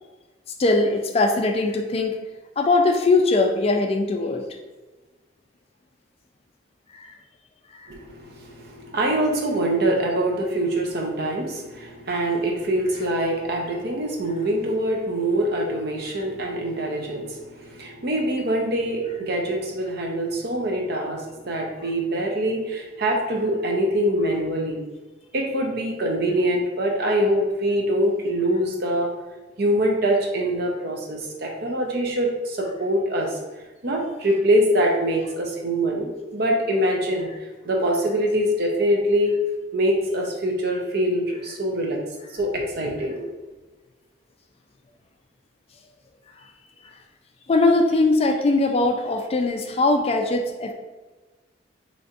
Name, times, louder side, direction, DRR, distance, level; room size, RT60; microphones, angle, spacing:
voice 1, 0.6-2.2 2.6-4.5 7.0-7.1 47.5-50.7, left 2 dB, 30° left, 4 dB, 0.3 m, -20 dB
voice 2, 7.9-24.8 25.3-29.1 29.6-33.4 33.8-39.4 39.7-42.0 42.3-43.4, right 1 dB, 55° right, 1 dB, 0.7 m, -24 dB
4.0 x 3.2 x 2.5 m, 1.2 s
head